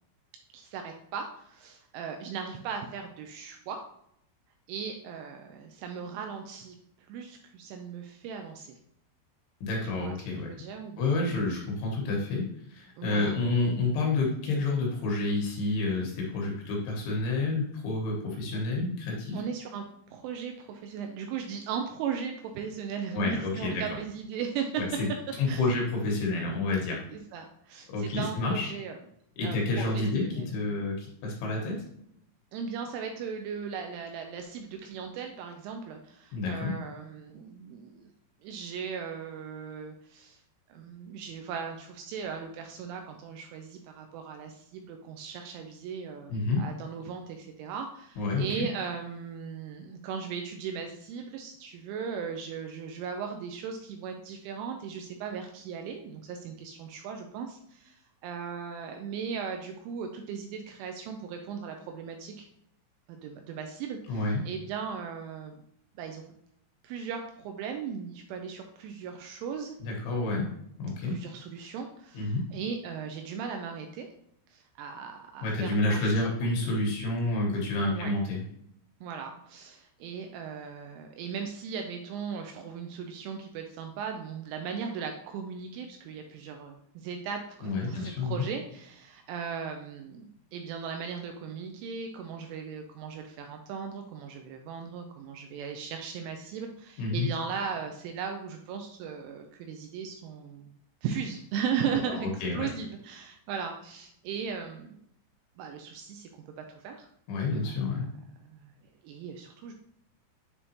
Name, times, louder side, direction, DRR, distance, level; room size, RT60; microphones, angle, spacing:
voice 1, 0.5-3.9 4.7-6.8 7.1-8.8 9.8-11.1 13.0-13.3 18.5-18.6 19.3-25.0 25.5-25.7 27.1-29.0 29.4-30.5 32.5-38.1 38.4-40.4 40.7-62.5 63.1-65.6 66.0-66.2 66.8-69.8 71.1-74.1 74.5-76.1 77.8-78.1 79.0-100.7 101.0-105.0 105.6-107.1 107.6-108.7 109.0-109.7, right 6 dB, 85° right, 4 dB, 2.8 m, -37 dB
voice 2, 9.6-10.5 11.0-19.4 23.1-23.8 24.8-24.9 25.4-27.0 27.9-28.7 29.4-31.8 36.3-36.7 46.3-46.7 48.2-48.7 64.1-64.4 69.8-70.5 70.8-71.2 72.1-72.5 75.4-78.4 87.6-88.4 97.0-97.3 102.1-102.7 107.3-108.1, left 2 dB, 70° left, -1 dB, 3.4 m, -29 dB
9.4 x 3.6 x 2.8 m, 0.72 s
omnidirectional pair, 6.0 m